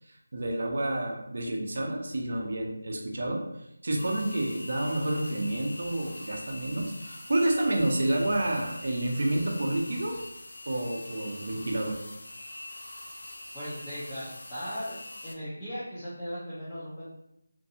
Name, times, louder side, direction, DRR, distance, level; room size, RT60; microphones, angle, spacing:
voice 1, 0.3-3.4 3.8-10.2 10.7-12.0, right 1 dB, 55° right, 1 dB, 0.5 m, -29 dB
sound 1, 4.0-15.3, left 1 dB, 60° left, 0.4 m, -43 dB
voice 2, 13.5-14.9 15.2-17.1, equal, 10° left, -14 dB, 0.6 m, -37 dB
2.6 x 2.2 x 2.7 m, 0.81 s
figure-of-eight pair, 170°, 0 cm